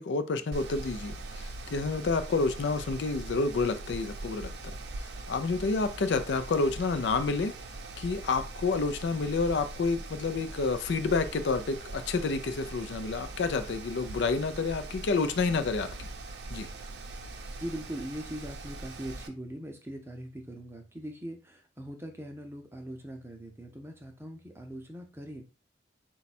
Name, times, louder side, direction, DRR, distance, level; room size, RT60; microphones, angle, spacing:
voice 1, 0.0-4.5 5.3-7.5 8.0-16.1 16.5-16.7, left 4 dB, 70° left, 0.4 m, -29 dB
Mechanical fan, 0.5-19.3, right 2 dB, 65° right, 0.5 m, -42 dB
voice 2, 17.6-25.4, right 1 dB, 15° right, 0.6 m, -41 dB
4.1 x 2.3 x 4.1 m
head